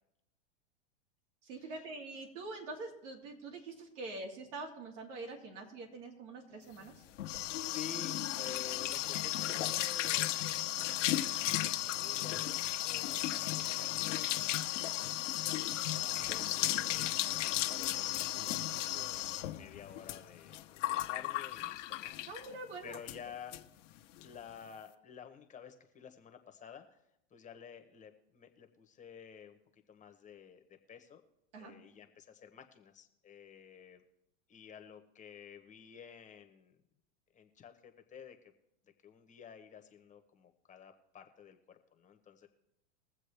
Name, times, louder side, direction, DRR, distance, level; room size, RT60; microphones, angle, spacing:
voice 1, 1.4-6.9 16.0-16.2 22.3-23.0 31.5-31.7, right 3 dB, 75° right, 1 dB, 3.0 m, -45 dB
sound 1, 6.8-22.5 22.9-23.2 23.5-23.6 23.9-24.3, left 14 dB, 80° left, 1.0 m, -35 dB
voice 2, 7.6-11.1 11.4-15.6 15.9-22.5 22.8-23.6 24.2-27.0 27.3-31.2 31.6-34.0 34.5-36.8 37.3-38.4 39.0-42.5, left 7 dB, 20° left, 7 dB, 1.0 m, -52 dB
21.5 x 7.5 x 3.4 m, 0.85 s
supercardioid pair, 135°, 36 cm